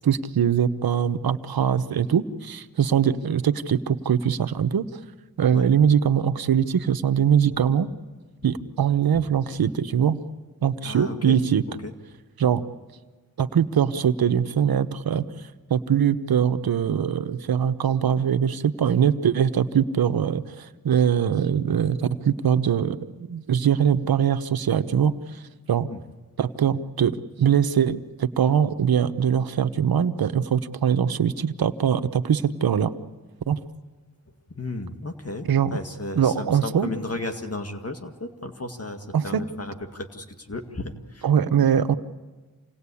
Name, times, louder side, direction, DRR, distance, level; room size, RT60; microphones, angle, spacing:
voice 1, 0.0-4.8 5.4-7.9 8.4-10.2 10.6-11.6 12.4-12.6 13.4-15.2 15.7-25.1 25.7-25.9 26.4-32.9 33.5-33.6 35.5-35.8 36.1-36.9 39.1-39.4 41.2-42.0, right 8 dB, 80° right, 11 dB, 1.0 m, -22 dB
voice 2, 10.8-11.3 11.7-11.9 25.9-26.0 34.5-41.3, left 2 dB, 40° left, 6 dB, 2.1 m, -34 dB
28.0 x 18.5 x 8.5 m, 1.3 s
cardioid pair, 45°, 36 cm